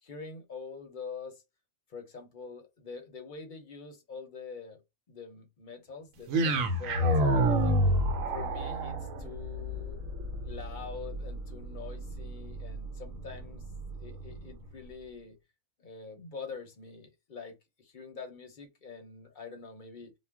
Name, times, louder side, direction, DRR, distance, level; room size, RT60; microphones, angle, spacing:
voice 1, 0.0-1.4 1.9-4.8 5.1-7.8 8.3-10.0 10.4-13.7 14.0-15.4 15.8-20.1, left 5 dB, 50° left, 0.7 m, -45 dB
sound 1, 6.3-14.5, right 1 dB, 85° right, 1.0 m, -30 dB
2.4 x 2.1 x 3.4 m
omnidirectional pair, 1.4 m